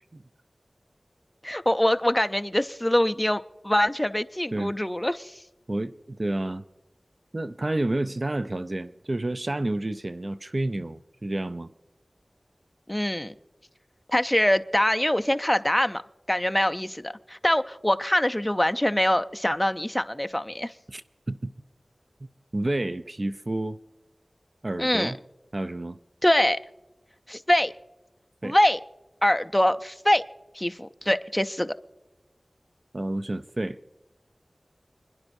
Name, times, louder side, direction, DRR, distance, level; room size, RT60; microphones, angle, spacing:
voice 1, 1.4-5.3 12.9-13.3 14.1-16.0 16.3-20.7 24.8-25.1 26.2-26.6 27.3-27.7 28.4-28.8 29.2-30.2 30.5-31.7, left 1 dB, 15° left, 0.5 m, -24 dB
voice 2, 5.7-6.6 7.3-11.7 20.9-21.0 21.3-21.5 22.5-23.8 24.6-25.2 25.5-26.0 28.4-28.6 32.9-33.8, right 1 dB, 50° right, 0.5 m, -29 dB
29.5 x 11.0 x 2.6 m
wide cardioid pair, 40°, 0 cm